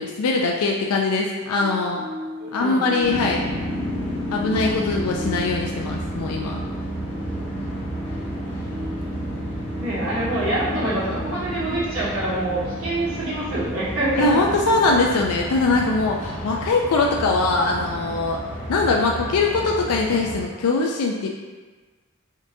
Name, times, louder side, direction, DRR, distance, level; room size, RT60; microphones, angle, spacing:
voice 1, 0.0-2.0 2.5-3.5 4.3-6.6 14.2-18.4 18.7-21.3, left 3 dB, 85° left, 0 dB, 0.4 m, -22 dB
sound 1, 1.6-18.1 18.4-18.6, left 2 dB, 5° right, 0.8 m, -40 dB
voice 2, 2.4-2.9 9.8-14.4, right 1 dB, 70° right, -9 dB, 1.4 m, -26 dB
sound 2, 3.0-20.4, right 1 dB, 25° left, 1.1 m, -31 dB
5.1 x 2.6 x 2.6 m, 1.3 s
head